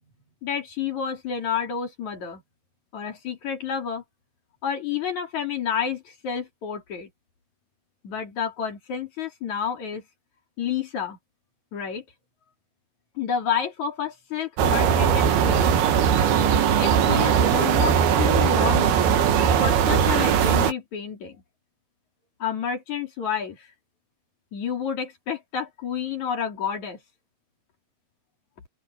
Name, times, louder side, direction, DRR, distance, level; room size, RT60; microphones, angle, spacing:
voice 1, 0.4-2.4 2.9-4.0 4.6-7.1 8.0-10.0 10.6-11.2 11.7-12.0 13.2-15.8 16.8-19.0 19.6-21.4 22.4-23.7 24.5-27.0, left 7 dB, 45° left, 4.3 m, -30 dB
sound 1, 14.6-20.7, right 8 dB, 70° right, 3.5 m, -20 dB
open air
omnidirectional pair, 4.9 m